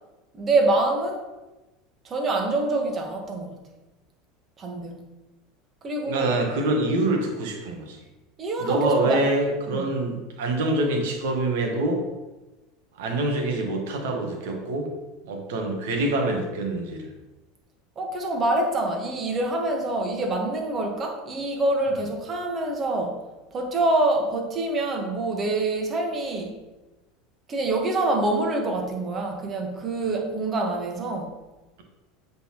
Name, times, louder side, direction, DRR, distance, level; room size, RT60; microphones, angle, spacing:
voice 1, 0.3-1.2 2.0-3.6 4.6-5.1 5.8-6.3 8.4-9.2 9.7-9.8 18.0-23.2 23.5-26.6 27.5-31.3, right 2 dB, 35° right, 2 dB, 1.3 m, -26 dB
voice 2, 6.1-8.0 8.6-12.0 13.0-14.9 15.3-17.1, right 2 dB, 70° right, 3 dB, 1.3 m, -25 dB
8.1 x 3.9 x 3.0 m, 1.1 s
hypercardioid pair, 80°, 0 cm